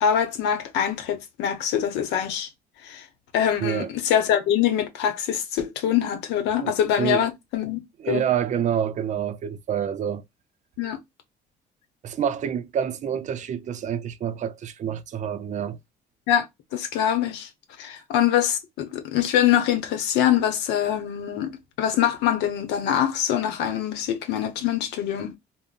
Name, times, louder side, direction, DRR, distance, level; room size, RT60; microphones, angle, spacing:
voice 1, 0.0-2.5 2.8-3.1 3.3-7.8 8.1-8.2 10.8-11.0 16.3-16.5 16.7-17.5 17.8-21.5 21.8-25.4, left 10 dB, 90° left, 0.8 m, -24 dB
voice 2, 3.6-3.9 6.6-7.3 8.0-10.2 12.0-15.8, right 9 dB, 45° right, 0.4 m, -27 dB
3.6 x 2.0 x 2.4 m
cardioid pair, 110°, 17 cm